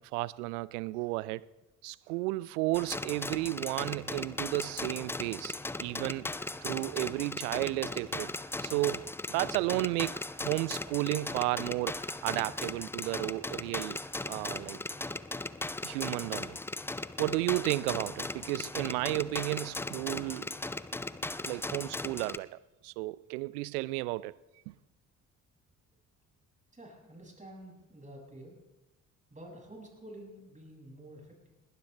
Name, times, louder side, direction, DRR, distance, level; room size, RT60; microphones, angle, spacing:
voice 1, 0.0-1.5 1.8-5.5 5.8-6.2 6.6-8.3 8.6-14.0 14.3-14.8 15.8-16.6 17.2-20.5 21.4-22.6 22.8-24.3 24.7-24.8, right 20 dB, 70° right, 0.6 m, -33 dB
sound 1, 2.7-22.4, left 2 dB, 5° left, 0.5 m, -38 dB
voice 2, 26.7-28.6 29.3-31.5, right 1 dB, 15° right, 7.0 m, -49 dB
20.5 x 18.5 x 3.3 m
figure-of-eight pair, 50°, 46 cm